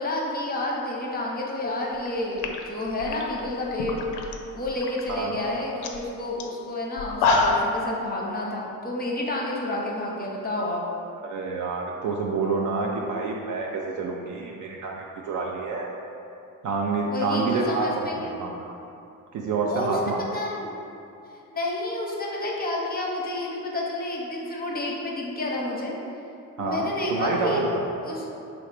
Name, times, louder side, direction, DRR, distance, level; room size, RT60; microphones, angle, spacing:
voice 1, 0.0-4.0 4.5-10.8 17.1-18.4 19.7-20.7 21.5-25.9 26.6-27.6 28.0-28.2, left 1 dB, 20° left, -3 dB, 0.7 m, -30 dB
sound 1, 1.9-2.1 2.4-4.3 4.7-5.1 5.5-5.6 5.8-6.0 6.4-6.5 7.0-7.8, left 3 dB, 55° left, 0.5 m, -25 dB
voice 2, 5.1-5.4 11.2-15.9 16.6-18.5 19.3-20.2 26.6-27.9, right 4 dB, 45° right, -1 dB, 0.4 m, -28 dB
3.1 x 2.9 x 3.3 m, 2.6 s
hypercardioid pair, 55°, 46 cm